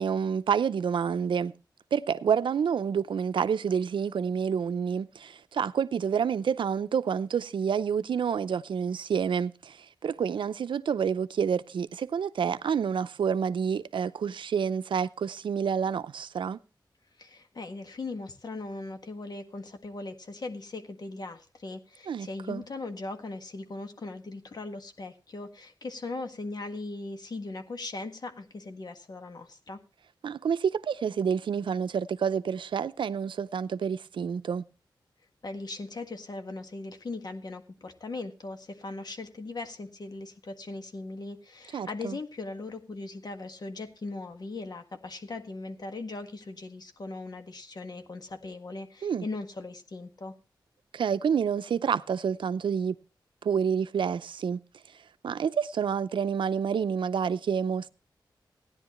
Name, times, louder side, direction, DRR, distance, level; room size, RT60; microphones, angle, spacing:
voice 1, 0.0-1.5 1.9-16.6 22.1-22.6 30.2-34.6 41.7-42.2 49.0-49.3 50.9-53.0 53.4-54.6 55.2-57.9, right 7 dB, 90° right, 0.5 m, -28 dB
voice 2, 17.2-29.8 35.4-50.3, left 3 dB, 55° left, 1.7 m, -39 dB
16.5 x 10.5 x 3.1 m
wide cardioid pair, 85°, 8 cm